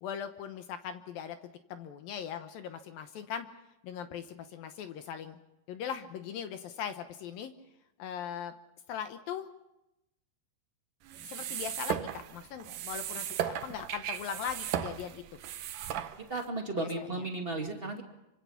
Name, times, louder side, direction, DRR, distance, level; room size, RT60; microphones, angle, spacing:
voice 1, 0.0-1.4 1.7-3.5 3.8-5.4 5.7-7.5 8.0-8.5 8.9-9.5 11.2-15.2 16.7-17.2, left 8 dB, 70° left, 8 dB, 2.4 m, -39 dB
sound 1, 11.1-16.5, right 10 dB, 70° right, 2.1 m, -36 dB
voice 2, 16.3-18.0, right 2 dB, 25° right, 2 dB, 1.2 m, -34 dB
26.5 x 25.0 x 5.8 m, 0.90 s
omnidirectional pair, 4.9 m